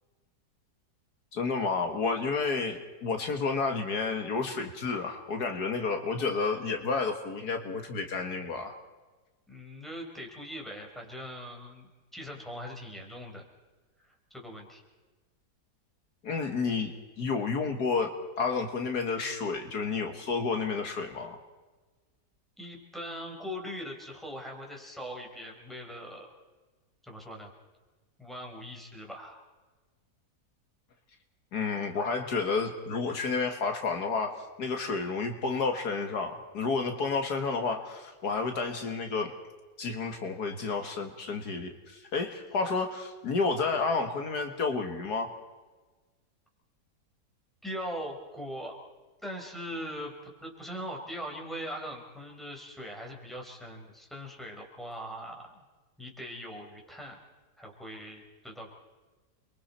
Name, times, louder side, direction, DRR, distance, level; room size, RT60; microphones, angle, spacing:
voice 1, 1.3-8.7 16.2-21.4 31.5-39.3 39.8-45.3, left 4 dB, 70° left, 5 dB, 2.1 m, -31 dB
voice 2, 9.5-13.4 14.0-14.8 22.6-26.3 27.0-27.5 28.2-29.4 47.6-48.8 49.2-50.1 50.4-55.6 56.0-57.2 57.6-58.7, equal, ahead, 0 dB, 4.3 m, -41 dB
29.0 x 23.0 x 4.3 m, 1.3 s
omnidirectional pair, 1.7 m